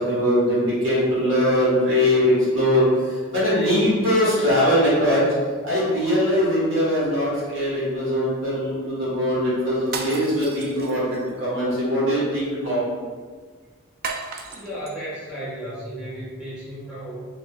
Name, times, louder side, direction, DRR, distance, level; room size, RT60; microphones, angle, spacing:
voice 1, 0.0-2.9 3.3-5.2 5.6-11.0 11.4-12.8, equal, 60° right, -8 dB, 1.3 m, -21 dB
sound 1, 9.8-11.3 14.0-15.0, right 4 dB, 45° right, 0.3 m, -34 dB
voice 2, 14.5-17.3, right 1 dB, 5° right, -11 dB, 1.3 m, -34 dB
3.6 x 3.1 x 2.3 m, 1.6 s
head